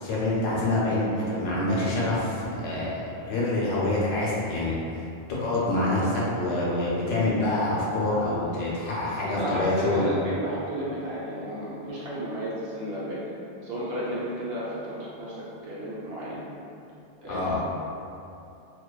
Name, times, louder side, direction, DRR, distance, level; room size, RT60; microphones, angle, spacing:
voice 1, 0.0-3.0 3.3-5.0 5.4-10.1 17.3-17.6, left 2 dB, 75° left, -7 dB, 0.9 m, -26 dB
voice 2, 9.2-13.2 13.6-16.4 17.2-17.6, equal, 65° right, -7 dB, 0.7 m, -32 dB
2.5 x 2.2 x 2.2 m, 2.7 s
omnidirectional pair, 1.3 m